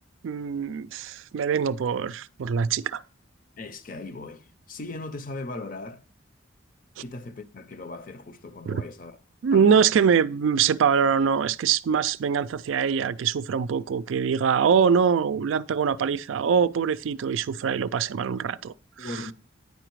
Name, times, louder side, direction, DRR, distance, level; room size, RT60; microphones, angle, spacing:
voice 1, 0.2-3.0 8.7-8.8 9.4-19.2, right 6 dB, 80° right, 0.4 m, -23 dB
voice 2, 3.6-6.0 7.0-9.2 9.5-9.9 19.0-19.3, left 2 dB, 45° left, 0.6 m, -38 dB
9.3 x 4.9 x 4.6 m
head